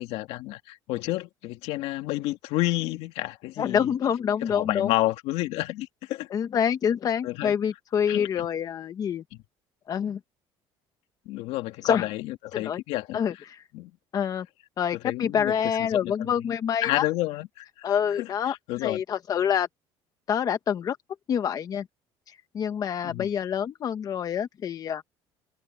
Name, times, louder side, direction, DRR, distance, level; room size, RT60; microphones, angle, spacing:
voice 1, 0.0-3.9 4.4-6.3 7.2-7.5 8.1-8.5 11.3-13.2 13.7-13.9 14.9-15.5 15.9-16.5 16.8-19.0 23.0-23.3, left 17 dB, 80° left, 2.1 m, -30 dB
voice 2, 3.6-4.9 6.3-9.2 9.9-10.2 11.8-12.1 12.5-12.8 13.1-13.6 14.1-14.5 14.8-17.0 17.8-18.6 18.8-19.7 20.3-21.0 21.3-21.9 22.3-25.0, left 8 dB, 35° left, 1.0 m, -26 dB
open air
cardioid pair, 145°, 10 cm